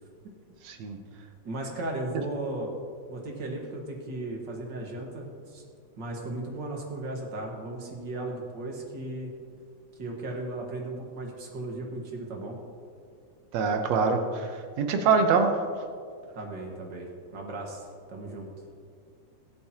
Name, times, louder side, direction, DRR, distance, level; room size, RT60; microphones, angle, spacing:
voice 1, 0.6-1.0 13.5-14.5 14.8-15.5, right 5 dB, 70° right, 5 dB, 2.0 m, -24 dB
voice 2, 1.4-2.7 3.1-5.6 6.0-9.3 10.0-12.6 16.3-18.5, right 2 dB, 45° right, 0 dB, 1.9 m, -36 dB
23.0 x 8.4 x 2.9 m, 2.2 s
omnidirectional pair, 3.4 m